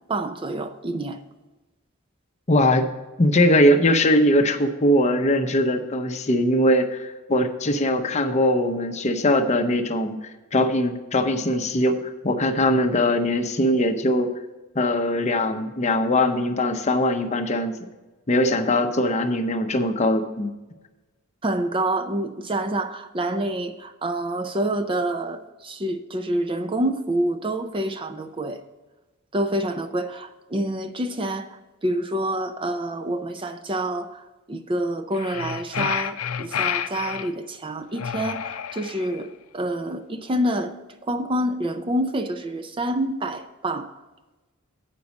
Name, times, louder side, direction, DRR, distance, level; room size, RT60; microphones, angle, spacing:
voice 1, 0.1-1.2 21.4-28.6 29.3-34.2 34.5-40.8 41.0-43.9, right 1 dB, 25° right, 0.4 m, -27 dB
voice 2, 2.5-2.9 3.2-10.2 10.5-14.3 14.8-17.9 18.3-20.5, left 1 dB, 30° left, 0.6 m, -21 dB
sound 1, 35.1-37.3 38.0-39.2, left 8 dB, 80° left, 0.5 m, -29 dB
8.3 x 5.2 x 7.0 m
head